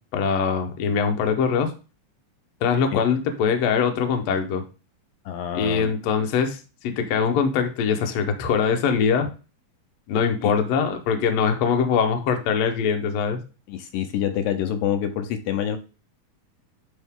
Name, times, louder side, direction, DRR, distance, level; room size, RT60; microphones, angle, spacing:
voice 1, 0.1-1.7 2.6-4.6 5.5-6.6 6.8-9.3 10.1-13.4, left 6 dB, 65° left, 5 dB, 1.8 m, -22 dB
voice 2, 5.3-5.9 10.4-10.5 13.7-15.8, left 10 dB, 80° left, 8 dB, 2.3 m, -26 dB
10.5 x 4.0 x 3.6 m, 0.33 s
omnidirectional pair, 3.9 m